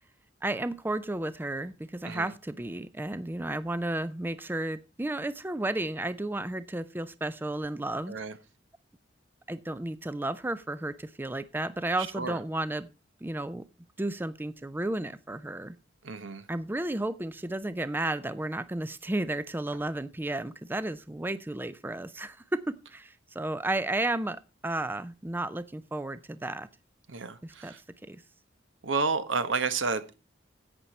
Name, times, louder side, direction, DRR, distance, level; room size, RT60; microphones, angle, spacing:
voice 1, 0.4-8.1 9.5-12.9 13.2-13.6 14.0-15.7 16.5-26.7 27.4-27.7 28.0-28.2, right 2 dB, 10° right, 15 dB, 0.4 m, -33 dB
voice 2, 16.0-16.4 27.1-27.8 28.8-30.1, right 4 dB, 80° right, 11 dB, 1.2 m, -30 dB
11.0 x 8.4 x 4.2 m, 0.29 s
head